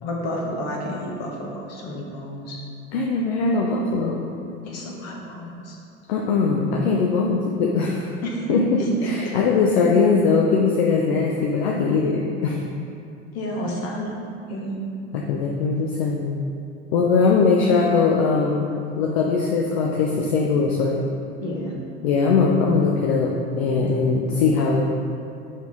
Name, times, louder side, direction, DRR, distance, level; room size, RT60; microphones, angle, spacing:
voice 1, 0.0-2.6 4.6-5.8 8.2-8.5 8.8-9.5 13.3-14.2 14.5-14.9 21.4-21.8, equal, 50° left, -1 dB, 1.5 m, -31 dB
voice 2, 2.9-4.3 6.1-8.1 8.5-12.6 15.1-16.4 16.9-21.0 22.0-24.8, left 4 dB, 65° left, -1 dB, 0.7 m, -21 dB
6.4 x 6.0 x 3.6 m, 2.6 s
figure-of-eight pair, 70°, 33 cm